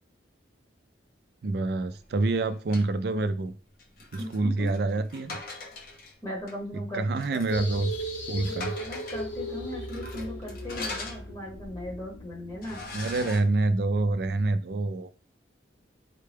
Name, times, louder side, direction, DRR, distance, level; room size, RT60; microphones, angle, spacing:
voice 1, 1.4-3.5 4.1-5.4 6.9-7.9 8.3-8.7 12.9-15.1, right 2 dB, 60° right, 11 dB, 0.4 m, -27 dB
sound 1, 2.2-2.9 3.8-6.1 6.5-6.6 7.1-7.6 7.9-8.0 8.4-9.3 9.9-11.7 12.1-12.2 12.6-13.4, left 3 dB, 50° left, 0.7 m, -41 dB
voice 2, 6.2-7.0 7.3-7.8 8.5-12.8, left 1 dB, 20° left, -2 dB, 0.9 m, -38 dB
sound 2, 7.5-14.6, equal, 80° left, 0.9 m, -38 dB
4.1 x 2.2 x 3.3 m, 0.36 s
head